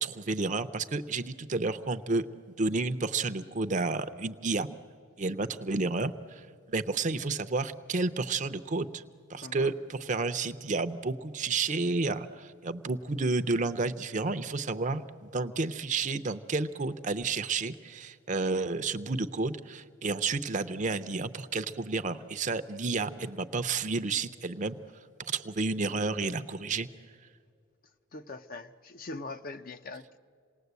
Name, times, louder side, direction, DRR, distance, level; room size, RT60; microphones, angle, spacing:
voice 1, 0.0-2.2 2.6-4.7 5.2-9.0 9.3-24.8 25.2-26.9, right 3 dB, 35° right, 0.6 m, -31 dB
voice 2, 9.4-9.7 28.1-30.2, left 3 dB, 40° left, 0.6 m, -42 dB
27.5 x 19.0 x 8.2 m
head